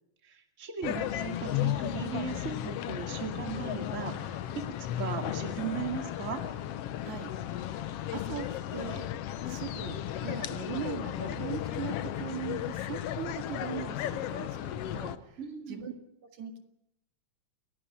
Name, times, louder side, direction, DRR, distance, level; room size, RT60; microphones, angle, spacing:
voice 1, 0.2-4.6 4.9-6.4 15.4-15.8, right 6 dB, 25° right, 5 dB, 2.5 m, -37 dB
sound 1, 0.8-15.2, left 12 dB, 65° left, 1.7 m, -35 dB
voice 2, 7.0-9.1 9.5-15.4 15.7-15.9 16.3-16.6, right 8 dB, 75° right, 6 dB, 3.4 m, -40 dB
29.5 x 11.5 x 8.7 m, 0.82 s
omnidirectional pair, 3.3 m